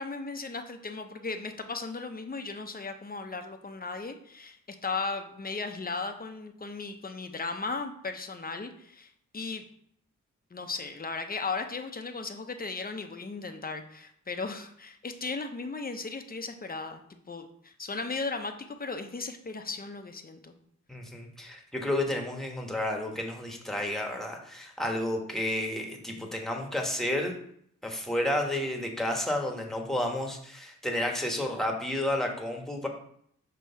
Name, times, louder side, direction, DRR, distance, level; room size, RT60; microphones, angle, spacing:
voice 1, 0.0-9.6 10.5-17.0 17.3-20.5, left 4 dB, 30° left, 6 dB, 0.8 m, -36 dB
voice 2, 20.9-27.3 27.8-32.9, left 1 dB, ahead, 1 dB, 1.3 m, -31 dB
6.2 x 3.0 x 5.7 m, 0.67 s
cardioid pair, 80°, 30 cm